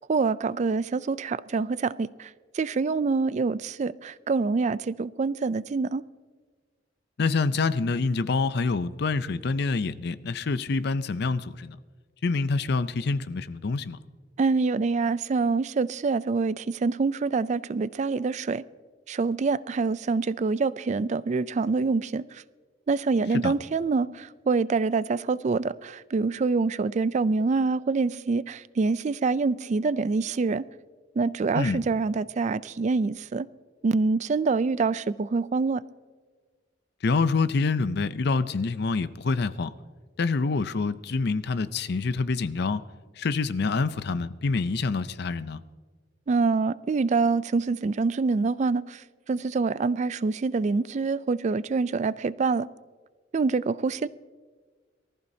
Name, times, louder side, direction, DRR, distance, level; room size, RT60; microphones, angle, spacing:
voice 1, 0.1-6.0 14.4-18.6 19.1-22.4 22.9-30.6 31.2-33.5 33.8-35.8 46.3-52.7 53.3-54.1, right 4 dB, 40° right, 0.3 m, -26 dB
voice 2, 7.2-11.8 12.2-14.0 23.4-23.5 31.5-31.8 37.0-39.7 40.2-42.8 43.2-45.6, left 4 dB, 60° left, 0.5 m, -26 dB
23.5 x 14.0 x 2.7 m
head